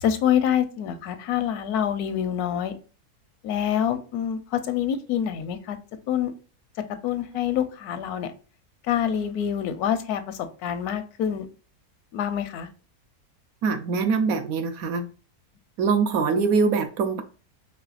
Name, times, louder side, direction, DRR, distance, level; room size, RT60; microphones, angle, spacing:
voice 1, 0.0-2.7 3.4-5.8 6.1-6.3 7.0-8.3 8.8-11.5 12.1-12.7, left 9 dB, 80° left, 1.1 m, -26 dB
voice 2, 13.6-15.1 15.8-17.2, right 5 dB, 70° right, 1.1 m, -23 dB
4.9 x 3.2 x 2.3 m
omnidirectional pair, 1.6 m